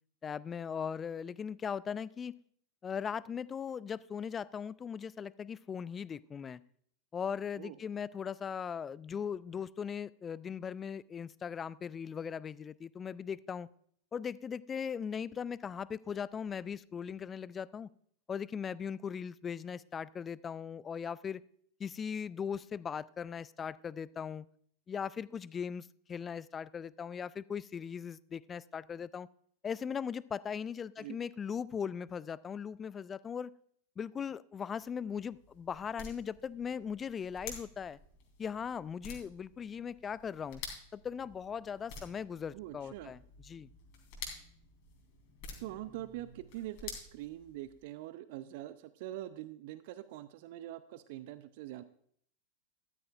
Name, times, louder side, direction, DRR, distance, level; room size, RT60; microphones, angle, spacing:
voice 1, 0.2-2.4 2.8-6.6 7.1-13.7 14.1-17.9 18.3-21.4 21.8-24.5 24.9-29.3 29.6-33.5 34.0-38.0 38.4-40.6 40.9-43.7, left 7 dB, 20° left, 21 dB, 0.3 m, -39 dB
sound 1, 34.8-47.9, left 5 dB, 45° left, 3.4 m, -50 dB
voice 2, 42.5-43.1 45.6-51.8, right 14 dB, 50° right, 14 dB, 0.5 m, -44 dB
13.5 x 13.0 x 2.5 m, 0.63 s
figure-of-eight pair, 90°, 0 cm